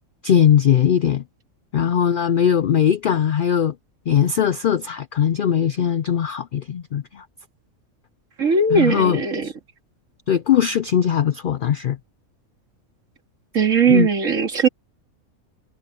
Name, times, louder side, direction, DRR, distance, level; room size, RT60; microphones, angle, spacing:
voice 1, 0.2-1.2 1.7-3.7 4.1-7.2 8.7-9.5 10.3-12.0 13.9-14.1, left 9 dB, 85° left, 0.4 m, -20 dB
voice 2, 8.4-9.5 13.5-14.7, right 5 dB, 65° right, 2.5 m, -18 dB
omnidirectional pair, 1.5 m